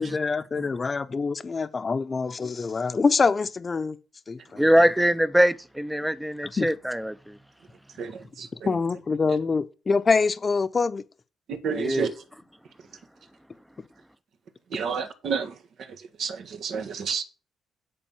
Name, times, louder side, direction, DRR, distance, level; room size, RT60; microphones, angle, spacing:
voice 1, 0.0-4.0 4.3-4.7 6.4-6.7 8.7-11.0, left 4 dB, 35° left, 0.8 m, -25 dB
voice 2, 4.6-7.1 11.7-12.1, equal, 5° right, 0.7 m, -22 dB
voice 3, 8.0-8.7 11.5-12.1 14.7-15.5 16.2-17.2, right 6 dB, 65° right, 1.5 m, -30 dB
10.0 x 4.3 x 7.2 m
cardioid pair, 90°, 0 cm